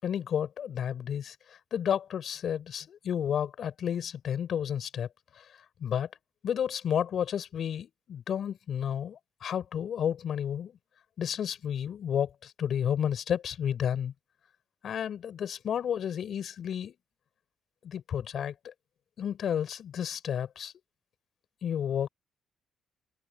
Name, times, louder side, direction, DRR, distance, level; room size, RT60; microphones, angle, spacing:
voice 1, 0.0-5.1 5.4-5.5 5.8-6.1 6.4-10.8 11.2-14.1 14.8-16.9 17.8-18.7 19.2-20.7 21.6-22.1, left 9 dB, 65° left, 5.3 m, -31 dB
cardioid pair, 90°, 0 cm